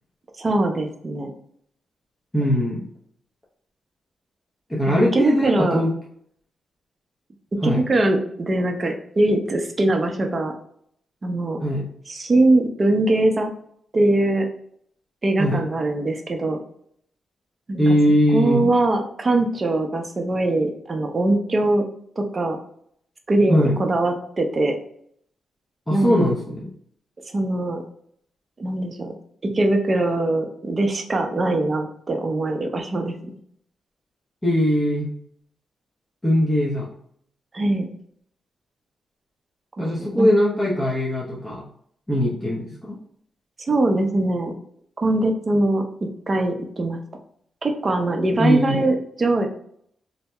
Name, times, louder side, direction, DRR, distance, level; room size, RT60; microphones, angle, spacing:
voice 1, 0.4-1.3 4.9-5.8 7.6-10.5 11.2-11.6 12.1-13.5 13.9-14.5 15.2-16.6 17.7-18.0 18.3-21.8 22.2-22.6 23.3-24.8 25.9-26.4 27.3-27.8 28.6-29.1 29.5-33.2 37.5-37.9 39.8-40.3 43.7-44.5 45.0-45.8 46.3-47.0 47.6-49.5, right 2 dB, 35° right, 4 dB, 0.5 m, -22 dB
voice 2, 2.3-2.8 4.7-5.9 7.6-7.8 11.6-11.9 15.4-15.6 17.8-18.7 23.5-23.8 25.9-26.7 34.4-35.1 36.2-36.9 39.8-41.6 42.1-43.0 48.4-48.9, equal, 15° left, -6 dB, 0.7 m, -20 dB
2.7 x 2.1 x 3.3 m, 0.67 s
cardioid pair, 75°, 0 cm